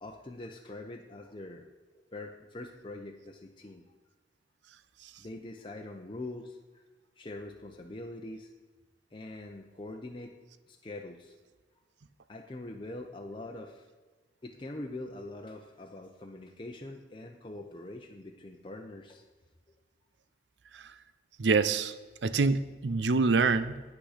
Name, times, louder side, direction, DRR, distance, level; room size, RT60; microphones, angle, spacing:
voice 1, 0.0-1.6 1.9-3.8 5.2-6.8 7.2-8.5 9.1-10.3 10.7-11.3 12.3-13.9 14.4-19.2, left 2 dB, 30° left, 2 dB, 0.7 m, -43 dB
voice 2, 21.4-21.9 22.2-23.7, right 4 dB, 85° right, 14 dB, 0.6 m, -25 dB
9.5 x 8.9 x 5.0 m, 1.3 s
head